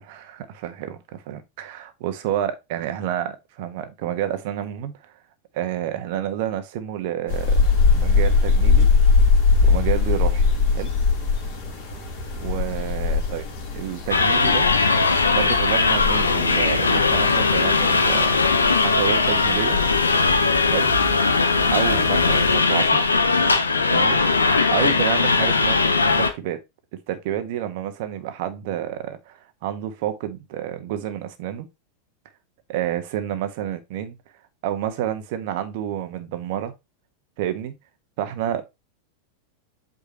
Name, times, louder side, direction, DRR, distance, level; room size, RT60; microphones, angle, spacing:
voice 1, 0.1-5.1 5.5-8.9 9.6-10.5 10.7-10.9 12.4-13.5 13.7-14.7 15.3-19.8 20.6-20.9 21.7-23.1 23.9-24.4 24.7-26.6 26.9-31.7 32.7-34.2 34.6-36.7 37.4-37.7 38.2-38.6, right 11 dB, 50° right, 1.4 m, -29 dB
sound 1, 7.3-22.6, left 4 dB, 55° left, 5.4 m, -22 dB
sound 2, 14.1-26.3, left 4 dB, 75° left, 1.0 m, -19 dB
8.4 x 5.3 x 3.0 m
figure-of-eight pair, 90°, 0 cm